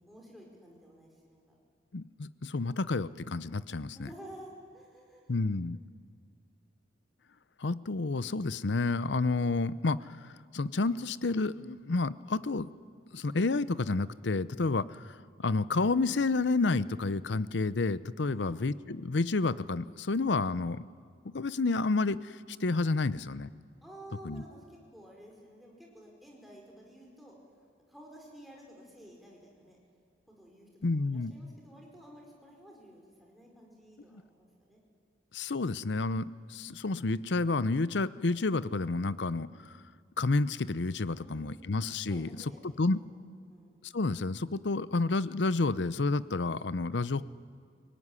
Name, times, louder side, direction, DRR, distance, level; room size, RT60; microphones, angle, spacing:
voice 1, 0.0-1.6 3.9-5.4 18.3-18.7 23.8-29.8 30.3-34.8 41.2-41.8 42.1-43.2 43.5-43.8, right 1 dB, ahead, -2 dB, 4.9 m, -52 dB
voice 2, 1.9-4.1 5.3-5.8 7.6-10.1 10.5-12.7 13.1-20.8 21.3-23.5 24.2-24.4 30.8-31.3 35.3-39.7 40.2-42.3 42.8-43.0 43.8-47.2, left 3 dB, 75° left, 16 dB, 0.7 m, -30 dB
28.5 x 18.5 x 9.8 m, 2.1 s
head